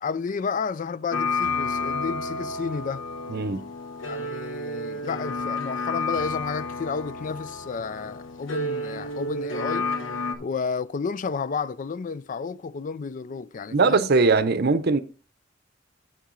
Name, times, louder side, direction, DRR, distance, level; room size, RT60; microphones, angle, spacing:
voice 1, 0.0-3.0 4.1-9.9 10.4-14.1, left 5 dB, 45° left, 0.4 m, -31 dB
sound 1, 1.1-10.3, left 3 dB, 90° left, 1.2 m, -30 dB
voice 2, 3.3-3.6 13.7-15.0, right 4 dB, 55° right, 0.7 m, -20 dB
8.2 x 7.1 x 3.8 m
head